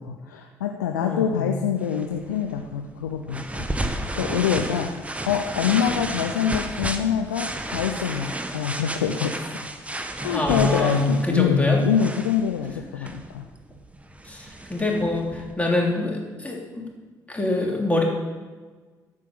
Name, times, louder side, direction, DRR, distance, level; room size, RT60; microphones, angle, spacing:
voice 1, 0.0-3.7 4.2-9.4 10.2-13.4, left 8 dB, 85° left, 4 dB, 0.5 m, -25 dB
voice 2, 1.0-1.5 10.3-11.8 13.0-13.1 14.2-16.8 17.3-18.0, left 2 dB, 15° left, -1 dB, 3.3 m, -24 dB
sound 1, 1.8-15.5, right 1 dB, 15° right, 1.2 m, -33 dB
13.5 x 5.4 x 6.8 m, 1.4 s
hypercardioid pair, 45°, 9 cm